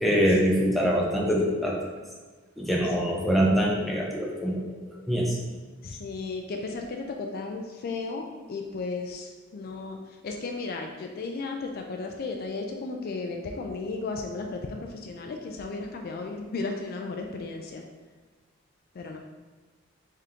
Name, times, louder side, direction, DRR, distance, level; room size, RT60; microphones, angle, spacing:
voice 1, 0.0-1.8 2.6-5.4, equal, ahead, -3 dB, 0.5 m, -24 dB
voice 2, 5.8-9.3 9.5-10.0 10.2-17.8 19.0-19.2, left 3 dB, 50° left, 3 dB, 0.4 m, -34 dB
3.7 x 3.5 x 2.8 m, 1.4 s
head